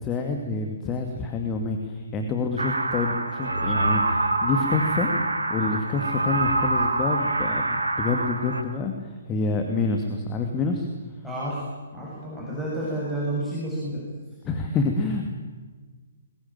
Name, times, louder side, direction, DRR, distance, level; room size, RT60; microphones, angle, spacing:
voice 1, 0.0-5.1 5.5-10.9 14.4-15.3, left 4 dB, 20° left, 4 dB, 2.3 m, -27 dB
sound 1, 2.6-8.6, right 2 dB, 75° right, 2.9 m, -25 dB
voice 2, 11.2-11.6 11.9-14.0, right 1 dB, ahead, -8 dB, 7.7 m, -30 dB
21.5 x 21.5 x 9.1 m, 1.4 s
figure-of-eight pair, 130°, 0 cm